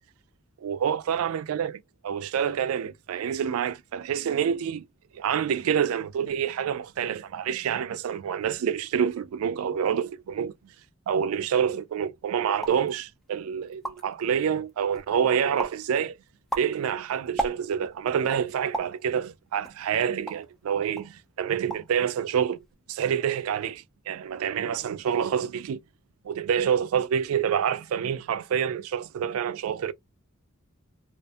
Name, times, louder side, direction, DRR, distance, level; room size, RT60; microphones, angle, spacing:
voice 1, 0.6-4.9 5.1-10.5 11.1-16.2 16.6-22.6 22.9-25.8 26.2-29.9, right 8 dB, 90° right, 0.3 m, -27 dB
sound 1, 12.6-12.9 13.4-13.5 13.7-14.2 14.7-15.2 15.6-15.9 16.3-18.0 18.7-19.0 19.6-20.6 21.0-21.2 21.5-22.0 22.2-22.7, right 2 dB, ahead, 0.3 m, -35 dB
2.5 x 2.4 x 2.3 m
head